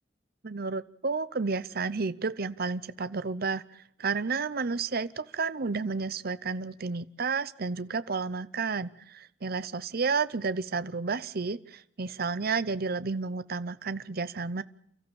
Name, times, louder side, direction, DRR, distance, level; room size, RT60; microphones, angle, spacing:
voice 1, 0.4-14.6, right 4 dB, 55° right, 15 dB, 0.8 m, -31 dB
29.0 x 14.0 x 7.1 m, 0.70 s
head